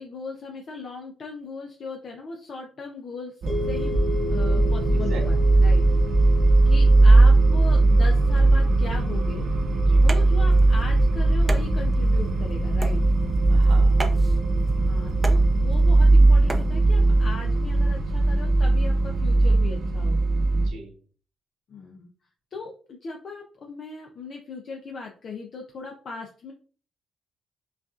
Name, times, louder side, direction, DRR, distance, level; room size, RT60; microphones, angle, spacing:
voice 1, 0.0-3.4 3.7-4.0 4.3-5.4 5.6-5.8 6.7-9.4 10.0-13.0 14.8-20.3 21.7-22.1 22.5-26.5, left 4 dB, 55° left, 1 dB, 0.6 m, -38 dB
sound 1, 3.4-20.7, right 2 dB, 55° right, 0.9 m, -19 dB
sound 2, 3.5-11.7, left 2 dB, 80° left, 1.7 m, -36 dB
voice 2, 4.9-5.3 9.8-10.1 13.5-14.2 20.6-20.9, right 3 dB, 90° right, -1 dB, 1.3 m, -40 dB
sound 3, 10.0-16.7, right 2 dB, 20° right, 0.6 m, -37 dB
5.6 x 2.5 x 2.4 m, 0.40 s
cardioid pair, 90°, 0 cm